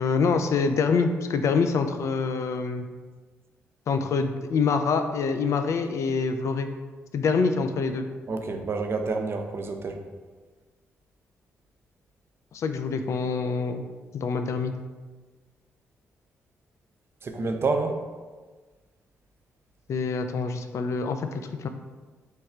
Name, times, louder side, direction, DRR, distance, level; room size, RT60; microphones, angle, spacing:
voice 1, 0.0-2.9 3.9-6.7 7.1-8.1 12.5-13.8 14.1-14.7 19.9-21.7, left 5 dB, 60° left, 7 dB, 0.3 m, -25 dB
voice 2, 8.3-10.0 17.2-18.0, right 3 dB, 45° right, 4 dB, 0.5 m, -28 dB
3.2 x 2.3 x 4.3 m, 1.4 s
supercardioid pair, 55°, 6 cm